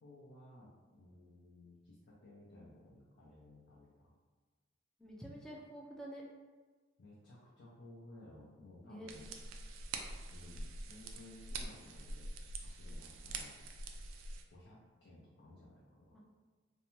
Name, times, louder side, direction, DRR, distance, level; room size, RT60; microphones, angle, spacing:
voice 1, 0.0-4.1 7.0-9.3 10.3-12.3 12.6-13.5 14.5-16.2, left 1 dB, 65° left, -6 dB, 0.5 m, -57 dB
voice 2, 5.0-6.2 8.8-9.1 16.1-16.2, right 1 dB, 5° left, -3 dB, 0.3 m, -48 dB
sound 1, 9.1-14.4, right 3 dB, 85° right, 0.3 m, -45 dB
2.6 x 2.1 x 2.9 m, 1.4 s
head